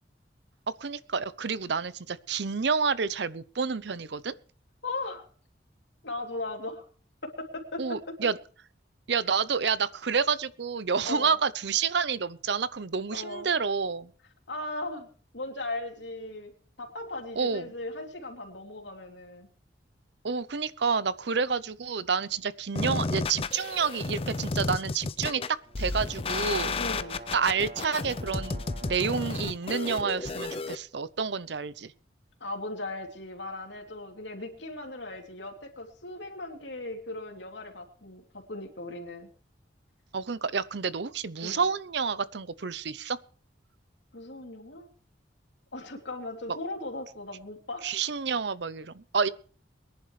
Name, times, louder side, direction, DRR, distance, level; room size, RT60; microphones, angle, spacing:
voice 1, 0.8-4.3 7.8-8.4 9.1-14.1 17.4-17.7 20.2-26.8 27.3-31.9 40.1-43.2 47.8-49.3, right 5 dB, 70° right, 17 dB, 0.7 m, -29 dB
voice 2, 4.8-5.3 6.0-6.8 7.2-8.1 11.0-11.3 13.1-13.5 14.5-15.1 15.3-16.5 16.8-19.5 26.8-27.2 32.4-39.3 41.4-41.6 44.1-44.9 45.7-47.9, left 2 dB, 75° left, 3 dB, 3.0 m, -38 dB
sound 1, 22.8-30.8, left 3 dB, 30° left, 0.5 m, -32 dB
sound 2, 25.6-29.5, right 3 dB, 40° right, 1.6 m, -46 dB
23.0 x 10.5 x 3.2 m, 0.41 s
head